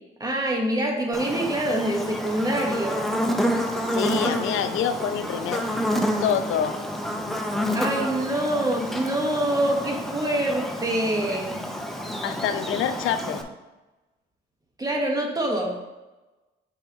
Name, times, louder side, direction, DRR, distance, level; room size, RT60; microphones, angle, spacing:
voice 1, 0.2-3.1 7.7-11.6 14.8-15.9, right 1 dB, 20° right, 0 dB, 1.5 m, -25 dB
Buzz, 1.1-13.4, equal, ahead, 0.8 m, -29 dB
voice 2, 3.8-5.7 6.2-6.8 12.2-13.4, left 8 dB, 90° left, 10 dB, 0.5 m, -26 dB
8.9 x 4.5 x 3.1 m, 1.1 s
cardioid pair, 90°, 20 cm